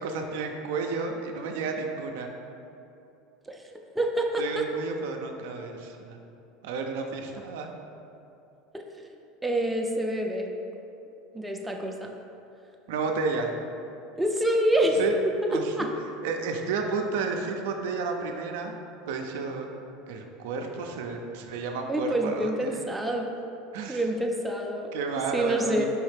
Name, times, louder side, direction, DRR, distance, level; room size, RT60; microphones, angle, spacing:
voice 1, 0.0-2.4 4.4-6.2 6.6-7.7 12.9-13.5 14.9-15.1 15.5-15.9 16.2-18.7 19.1-19.7 20.1-22.8 23.7-24.0 24.9-25.9, right 4 dB, 75° right, 3 dB, 0.4 m, -31 dB
voice 2, 3.5-4.4 9.0-9.1 9.4-10.5 11.3-12.1 14.2-15.0 15.4-15.9 21.9-23.3 23.9-25.9, right 1 dB, 10° right, 1 dB, 0.4 m, -27 dB
4.6 x 3.1 x 3.3 m, 2.7 s
supercardioid pair, 110°, 0 cm